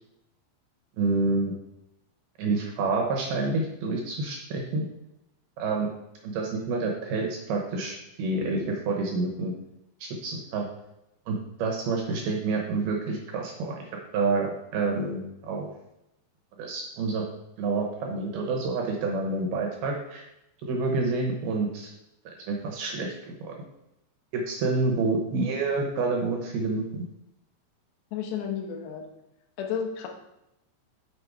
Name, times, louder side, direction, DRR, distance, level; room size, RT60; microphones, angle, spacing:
voice 1, 1.0-1.5 2.4-4.9 5.6-5.9 6.2-9.5 10.0-10.7 11.3-13.7 14.1-15.7 16.6-17.2 17.6-20.2 20.6-21.9 22.5-23.1 23.4-23.6 24.3-27.0, right 3 dB, 70° right, 1 dB, 2.6 m, -28 dB
voice 2, 28.1-29.1 29.6-30.1, left 8 dB, 75° left, 3 dB, 3.1 m, -32 dB
6.8 x 5.8 x 4.7 m, 0.86 s
omnidirectional pair, 5.2 m